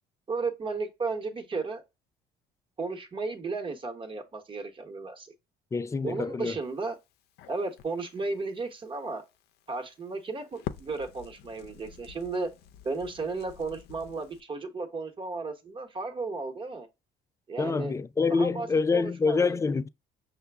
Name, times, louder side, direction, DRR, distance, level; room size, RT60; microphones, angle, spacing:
voice 1, 0.3-1.8 2.8-5.3 6.0-7.0 7.5-9.2 9.7-12.5 12.8-16.9 17.5-17.9 18.3-19.6, right 3 dB, 30° right, 1.1 m, -34 dB
voice 2, 5.7-6.6 17.6-19.9, left 4 dB, 20° left, 0.3 m, -26 dB
Crackle, 6.6-14.4, left 10 dB, 75° left, 0.5 m, -47 dB
5.7 x 2.2 x 3.4 m
cardioid pair, 110°, 17 cm